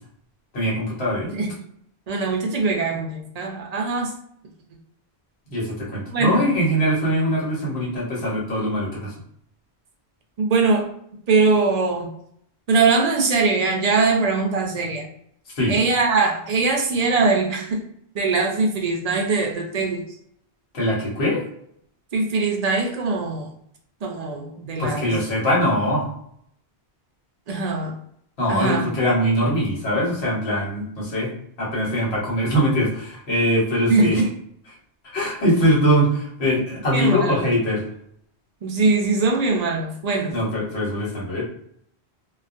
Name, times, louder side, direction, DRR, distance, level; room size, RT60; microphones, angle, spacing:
voice 1, 0.5-1.3 5.5-9.1 15.6-15.8 20.7-21.4 24.5-26.1 28.4-31.3 31.6-34.2 35.1-37.9 40.3-41.4, equal, 75° left, -5 dB, 1.3 m, -22 dB
voice 2, 2.1-4.1 6.1-6.4 10.4-10.9 11.3-12.1 12.7-15.1 15.7-17.8 18.1-20.1 22.1-23.5 24.0-25.1 27.5-27.9 28.5-28.9 33.9-34.3 36.9-37.5 38.6-40.4, right 3 dB, 55° right, 1 dB, 0.4 m, -21 dB
2.3 x 2.3 x 2.5 m, 0.68 s
omnidirectional pair, 1.1 m